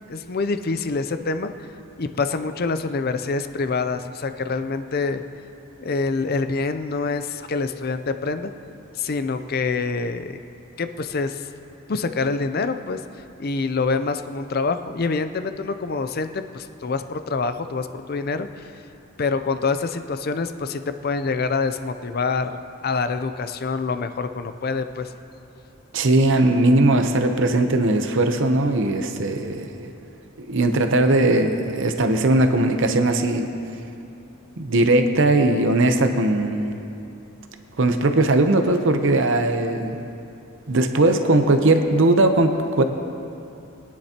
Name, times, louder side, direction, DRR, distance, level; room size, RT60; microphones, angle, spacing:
voice 1, 0.0-1.7 2.0-5.2 5.8-8.5 8.9-10.4 10.8-11.5 11.9-13.0 13.4-18.7 19.2-25.1, left 4 dB, 45° left, 9 dB, 0.5 m, -26 dB
voice 2, 25.9-29.9 30.5-33.5 34.6-36.8 37.8-40.1 40.7-42.8, right 2 dB, 60° right, 6 dB, 0.8 m, -19 dB
22.5 x 9.7 x 2.9 m, 2.7 s
head